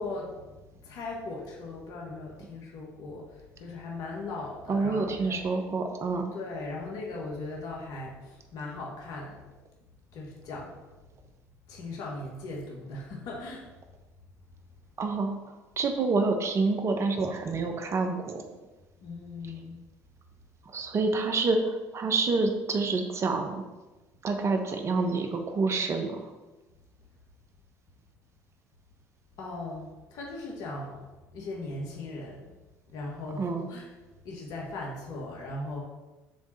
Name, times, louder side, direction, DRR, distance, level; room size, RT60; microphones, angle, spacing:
voice 1, 0.0-5.4 6.3-9.4 10.1-10.8 11.7-13.7 19.0-19.8 29.4-31.0 31.3-32.5 32.9-33.9 34.2-35.8, left 2 dB, 65° left, -2 dB, 1.6 m, -38 dB
voice 2, 4.7-6.3 15.0-15.3 15.8-18.4 20.7-23.6 24.2-26.2 33.4-33.7, right 3 dB, 45° right, 5 dB, 1.2 m, -27 dB
7.1 x 3.6 x 6.4 m, 1.1 s
hypercardioid pair, 70°, 7 cm